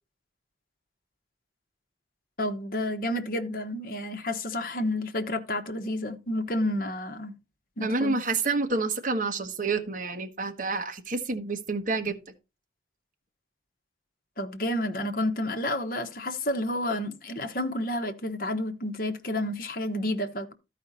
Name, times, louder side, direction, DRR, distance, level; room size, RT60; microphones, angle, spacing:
voice 1, 2.4-7.3 7.8-8.2 14.4-20.5, left 1 dB, 50° left, 1.1 m, -30 dB
voice 2, 7.8-12.2, right 3 dB, 45° right, 1.3 m, -28 dB
13.0 x 5.0 x 4.1 m
head